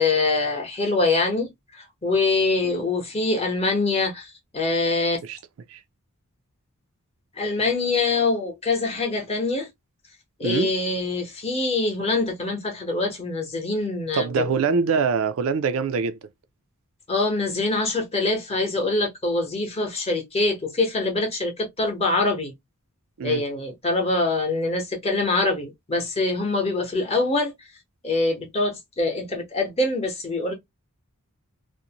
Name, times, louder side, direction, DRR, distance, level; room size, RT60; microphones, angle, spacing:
voice 1, 0.0-5.2 7.4-9.7 10.4-14.6 17.1-22.5 23.2-27.5 28.0-30.5, left 3 dB, 30° left, 0.8 m, -24 dB
voice 2, 10.4-10.7 14.1-16.2 23.2-23.4, right 5 dB, 65° right, 0.4 m, -24 dB
2.5 x 2.0 x 2.8 m
head